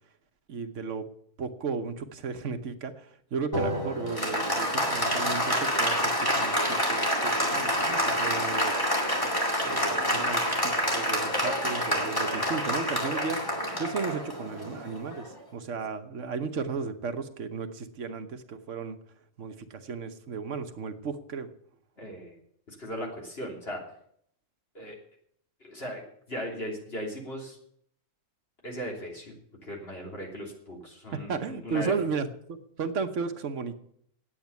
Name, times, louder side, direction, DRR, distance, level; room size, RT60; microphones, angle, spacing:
voice 1, 0.5-1.1 1.4-8.7 9.6-13.5 13.8-19.0 19.4-21.5 31.3-33.8, right 5 dB, 70° right, 8 dB, 1.4 m, -34 dB
Applause, 3.5-15.4, equal, 15° left, 2.3 m, -27 dB
voice 2, 22.0-22.3 22.7-23.8 24.7-25.0 25.6-27.6 28.6-29.3 29.6-31.9, equal, 50° left, -1 dB, 3.5 m, -38 dB
9.2 x 9.0 x 9.4 m, 0.67 s
omnidirectional pair, 1.4 m